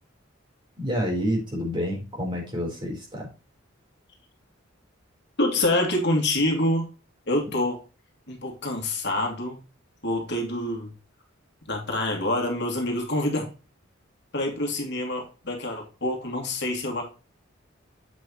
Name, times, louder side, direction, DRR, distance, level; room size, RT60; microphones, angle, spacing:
voice 1, 0.8-3.3, equal, 25° right, -2 dB, 4.0 m, -28 dB
voice 2, 5.4-6.9 7.3-7.8 8.3-9.6 10.0-10.9 11.7-13.5 14.3-17.0, left 1 dB, 60° left, 1 dB, 2.5 m, -26 dB
8.4 x 6.3 x 3.1 m, 0.31 s
head